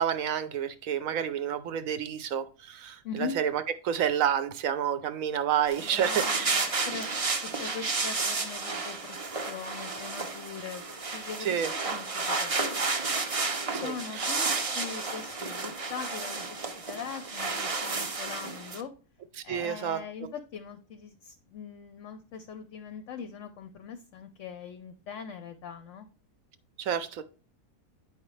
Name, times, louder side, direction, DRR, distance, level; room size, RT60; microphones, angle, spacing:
voice 1, 0.0-6.6 7.2-7.3 11.4-11.7 13.7-14.3 19.5-20.3 26.8-27.2, right 9 dB, 65° right, 1.0 m, -29 dB
sound 1, 5.7-18.8, right 3 dB, 35° right, 0.5 m, -32 dB
voice 2, 5.8-7.1 7.6-10.8 11.1-12.9 13.7-14.5 14.7-16.6 16.9-18.9 19.4-26.1, left 6 dB, 60° left, 0.8 m, -41 dB
9.0 x 5.0 x 3.1 m
omnidirectional pair, 1.7 m